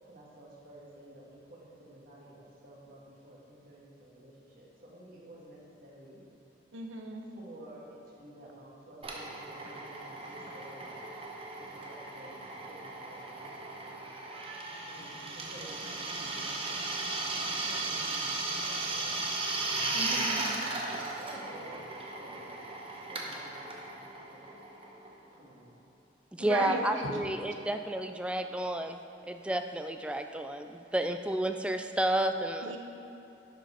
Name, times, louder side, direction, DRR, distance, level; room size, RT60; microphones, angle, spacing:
voice 1, 0.0-6.2 7.3-11.2 11.6-12.4 12.7-14.0 14.8-19.2 21.2-21.8 22.2-22.6 23.1-24.4 25.3-25.8, right 1 dB, 50° right, -4 dB, 1.5 m, -52 dB
voice 2, 6.7-7.3 19.9-20.5 26.4-27.2 32.6-32.8, right 2 dB, 90° right, 3 dB, 0.9 m, -36 dB
Drill, 9.0-25.4, right 3 dB, 30° right, 0.9 m, -36 dB
voice 3, 26.3-32.8, right 1 dB, 5° right, 6 dB, 0.3 m, -31 dB
11.0 x 5.1 x 4.3 m, 2.9 s
head